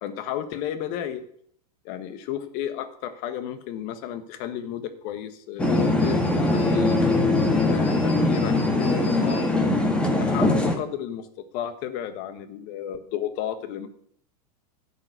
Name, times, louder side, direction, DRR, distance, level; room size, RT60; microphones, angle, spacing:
voice 1, 0.0-1.2 1.8-7.3 7.6-9.7 10.1-13.9, left 10 dB, 55° left, 11 dB, 1.4 m, -33 dB
sound 1, 5.6-10.8, left 2 dB, 5° left, 1.8 m, -21 dB
11.0 x 5.5 x 8.0 m, 0.65 s
hypercardioid pair, 105°, 21 cm